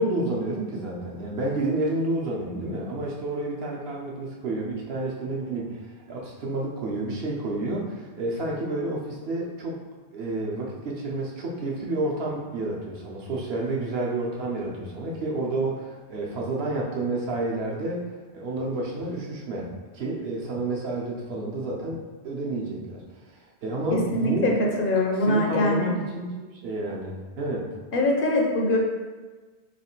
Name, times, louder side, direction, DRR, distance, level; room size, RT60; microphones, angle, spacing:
voice 1, 0.0-9.8 10.1-23.0 23.3-24.6 25.2-27.7, right 2 dB, 65° right, -3 dB, 0.9 m, -30 dB
voice 2, 23.9-24.5 24.8-25.9 27.9-28.8, left 1 dB, 60° left, -1 dB, 0.7 m, -23 dB
3.1 x 3.1 x 4.3 m, 1.3 s
omnidirectional pair, 1.1 m